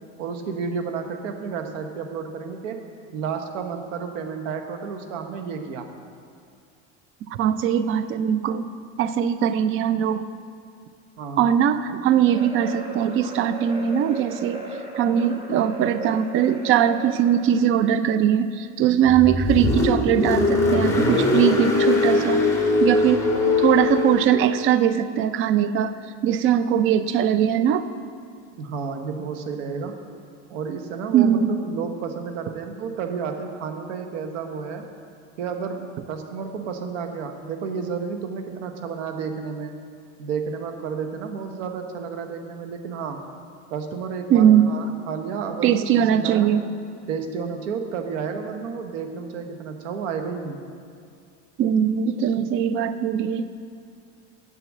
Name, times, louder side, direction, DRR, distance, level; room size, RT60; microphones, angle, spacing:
voice 1, 0.2-2.8 3.1-5.9 11.2-11.5 28.5-29.9 30.5-34.8 35.4-39.8 40.2-43.2 43.7-46.5 47.1-50.6 52.4-52.5, right 6 dB, 90° right, 6 dB, 1.1 m, -31 dB
voice 2, 7.3-8.7 9.0-10.2 11.4-14.6 15.0-22.4 22.8-23.2 23.6-25.9 26.2-27.9 31.1-31.5 44.3-44.7 45.6-46.6 51.6-53.4, right 9 dB, 35° right, 12 dB, 0.4 m, -20 dB
sound 1, 12.2-17.7, right 2 dB, 15° right, 1.4 m, -36 dB
Car, 19.1-24.5, left 3 dB, 10° left, 1.7 m, -21 dB
7.5 x 7.5 x 7.3 m, 2.3 s
supercardioid pair, 120°, 37 cm